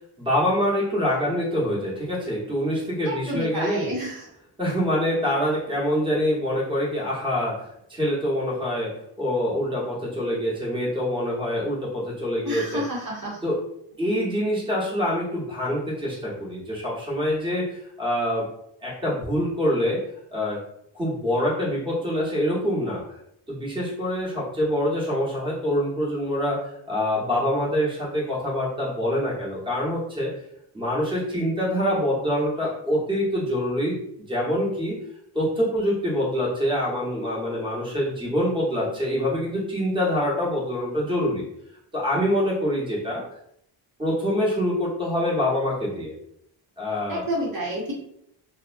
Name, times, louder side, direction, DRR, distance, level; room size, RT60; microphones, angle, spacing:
voice 1, 0.2-3.9 4.6-7.6 7.9-12.8 13.4-13.6 14.0-18.5 18.8-20.0 20.3-20.6 20.9-23.0 23.5-26.6 26.9-30.3 30.7-34.9 35.3-41.4 41.9-43.2 44.0-46.1 46.8-47.2, equal, 10° right, -5 dB, 1.0 m, -25 dB
voice 2, 3.0-4.3 12.5-13.4 47.1-47.9, equal, 50° right, -5 dB, 0.8 m, -29 dB
2.4 x 2.0 x 2.5 m, 0.73 s
cardioid pair, 95°, 44 cm